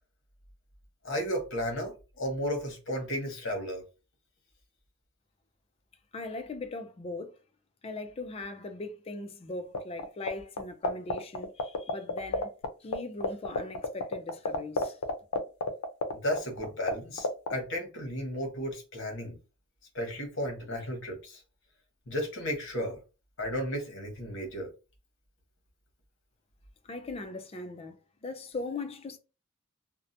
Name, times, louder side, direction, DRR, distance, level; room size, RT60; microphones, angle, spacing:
voice 1, 1.0-3.8 16.2-19.4 19.9-21.4 22.1-23.0 23.4-24.7, equal, 55° left, 1.0 m, -34 dB
voice 2, 6.1-7.4 7.8-12.5 12.8-15.0 26.8-29.2, left 3 dB, 25° left, 0.3 m, -39 dB
sound 1, 9.7-10.3 10.6-12.7 12.9-13.0 13.2-16.9 17.2-17.5, left 4 dB, 90° left, 0.5 m, -28 dB
2.7 x 2.1 x 2.5 m
head